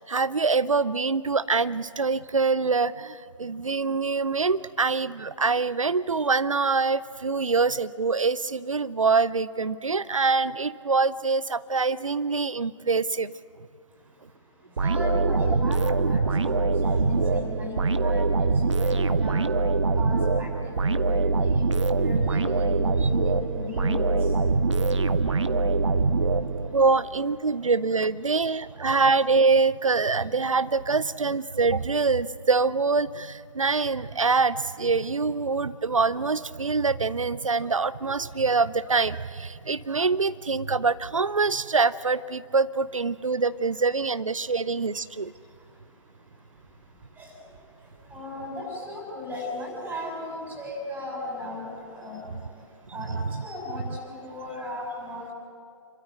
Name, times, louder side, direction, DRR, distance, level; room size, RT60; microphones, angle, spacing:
voice 1, 0.0-13.3 26.0-26.1 26.7-45.3 53.3-53.4, right 4 dB, 85° right, 16 dB, 0.5 m, -24 dB
voice 2, 14.8-19.5 19.9-24.3 47.2-47.3 48.1-52.3 52.9-55.3, left 1 dB, 10° right, -1 dB, 6.6 m, -36 dB
sound 1, 14.8-26.9, right 3 dB, 65° right, 1.1 m, -23 dB
28.0 x 13.0 x 9.5 m, 2.3 s
figure-of-eight pair, 125°, 16 cm